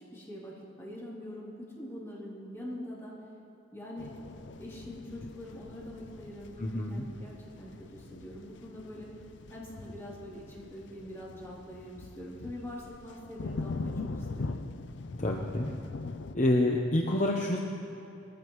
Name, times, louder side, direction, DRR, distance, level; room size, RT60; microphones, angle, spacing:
voice 1, 0.1-3.1 3.7-4.1 4.6-9.1 9.5-14.6, equal, 15° left, -7 dB, 3.1 m, -44 dB
sound 1, 4.0-16.4, left 3 dB, 65° left, 0.5 m, -42 dB
voice 2, 6.6-7.1 15.2-15.7 16.3-17.6, left 1 dB, 40° left, 0 dB, 0.8 m, -27 dB
21.5 x 15.0 x 3.1 m, 2.9 s
head